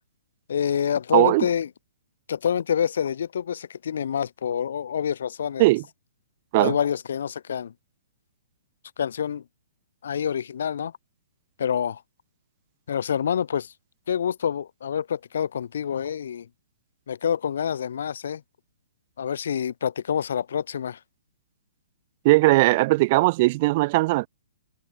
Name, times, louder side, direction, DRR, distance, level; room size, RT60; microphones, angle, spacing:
voice 1, 0.5-1.7 2.3-5.7 6.6-7.7 9.0-9.4 10.0-10.9 11.6-12.0 12.9-13.7 14.1-16.5 17.1-18.4 19.2-21.0, left 8 dB, 70° left, 0.3 m, -27 dB
voice 2, 1.1-1.4 5.6-5.8 6.5-6.7 22.2-24.3, right 21 dB, 40° right, 0.3 m, -19 dB
hypercardioid pair, 150°, 0 cm